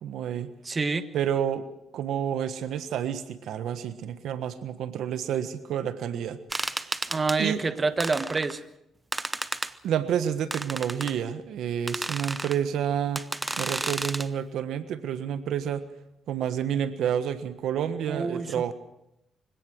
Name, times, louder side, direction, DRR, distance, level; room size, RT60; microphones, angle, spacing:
voice 1, 0.0-0.5 1.1-6.4 6.7-7.0 7.4-7.6 9.8-13.2 13.6-15.9 16.3-18.7, right 9 dB, 75° right, 11 dB, 1.4 m, -29 dB
voice 2, 0.6-1.0 7.1-8.6 18.1-18.7, right 4 dB, 30° right, 10 dB, 1.3 m, -27 dB
sound 1, 6.5-7.4 8.0-8.6 9.1-9.7 10.5-11.1 11.9-12.6 13.2-14.3, right 2 dB, 15° right, 0.9 m, -32 dB
24.0 x 17.0 x 6.3 m, 0.82 s
cardioid pair, 90°, 0 cm